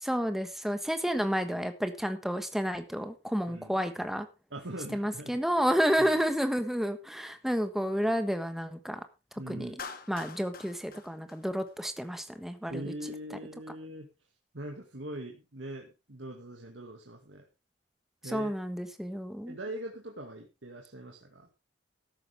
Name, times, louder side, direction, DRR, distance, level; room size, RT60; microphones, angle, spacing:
voice 1, 0.0-4.3 4.9-9.0 9.5-9.7 10.1-12.9 18.2-19.5, equal, ahead, 8 dB, 1.3 m, -30 dB
voice 2, 4.5-5.4 6.0-6.1 9.4-9.8 12.7-14.1 14.5-17.4 18.2-18.5 19.5-21.5, right 1 dB, 85° right, 1 dB, 2.1 m, -41 dB
Clapping, 9.8-12.1, left 5 dB, 50° left, 1.5 m, -45 dB
14.0 x 11.0 x 3.5 m, 0.28 s
head